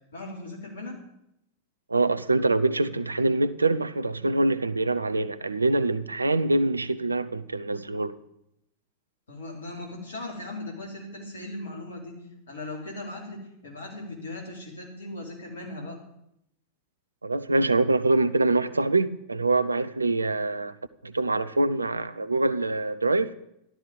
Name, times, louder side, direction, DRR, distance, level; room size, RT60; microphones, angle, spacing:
voice 1, 0.1-0.9 9.3-12.1 12.5-16.0, left 2 dB, 65° left, 4.2 m, -38 dB
voice 2, 1.9-8.1 17.2-20.8 21.0-23.3, right 2 dB, 80° right, 0.6 m, -24 dB
13.5 x 12.0 x 5.4 m
figure-of-eight pair, 90°, 0 cm